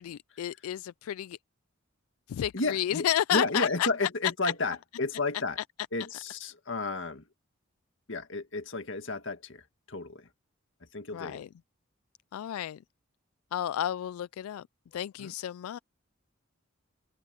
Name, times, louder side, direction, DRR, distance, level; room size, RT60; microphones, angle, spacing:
voice 1, 0.0-1.4 2.3-3.9 11.1-11.5 12.3-12.8 13.5-14.6 14.9-15.8, left 11 dB, 90° left, 0.3 m, -31 dB
voice 2, 2.5-5.6 5.9-7.2 8.1-10.3 10.9-11.4 15.2-15.3, left 3 dB, 60° left, 1.9 m, -32 dB
open air
head